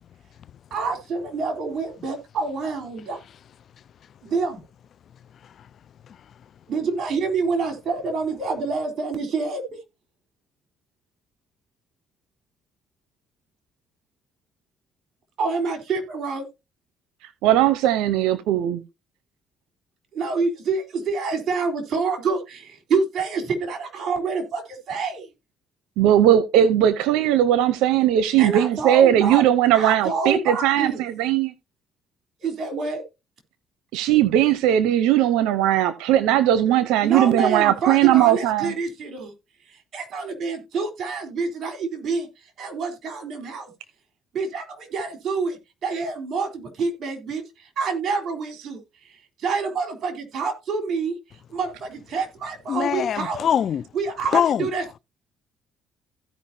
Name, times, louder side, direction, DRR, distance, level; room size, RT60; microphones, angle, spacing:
voice 1, 0.7-3.2 4.2-4.6 6.7-9.6 15.4-16.5 20.1-25.3 28.4-29.4 29.7-31.0 32.4-33.0 37.0-39.3 39.7-42.3 42.6-43.7 44.3-48.8 49.4-51.1 51.5-53.4 53.9-55.0, right 4 dB, 55° right, 3.9 m, -27 dB
voice 2, 17.4-18.8 26.0-31.5 33.9-38.7, right 11 dB, 90° right, 0.8 m, -19 dB
voice 3, 52.7-53.8 54.3-54.7, left 9 dB, 55° left, 0.5 m, -22 dB
16.0 x 5.3 x 2.8 m
cardioid pair, 90°, 0 cm